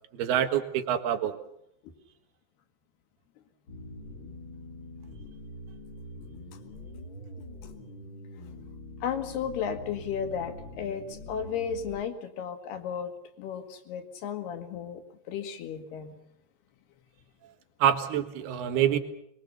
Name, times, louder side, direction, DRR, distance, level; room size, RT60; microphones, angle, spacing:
voice 1, 0.1-1.3 17.8-19.0, right 10 dB, 65° right, 7 dB, 3.4 m, -26 dB
sound 1, 3.7-12.0, left 1 dB, 30° left, 3.2 m, -44 dB
voice 2, 9.0-13.1 13.4-15.0 15.3-16.1, left 7 dB, 65° left, 7 dB, 3.8 m, -34 dB
24.0 x 23.0 x 6.8 m, 0.76 s
omnidirectional pair, 5.1 m